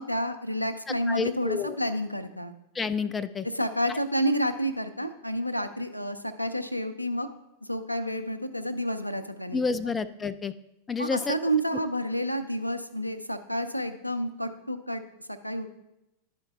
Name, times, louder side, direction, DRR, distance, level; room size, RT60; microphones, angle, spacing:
voice 1, 0.0-2.5 3.5-7.3 7.7-9.9 11.0-15.0 15.3-15.7, equal, 90° left, 8 dB, 0.5 m, -30 dB
voice 2, 1.1-1.8 2.7-3.5 3.9-4.0 9.5-10.5 10.9-11.4, left 5 dB, 15° left, 12 dB, 0.3 m, -29 dB
11.0 x 4.4 x 3.4 m, 0.88 s
figure-of-eight pair, 90°, 0 cm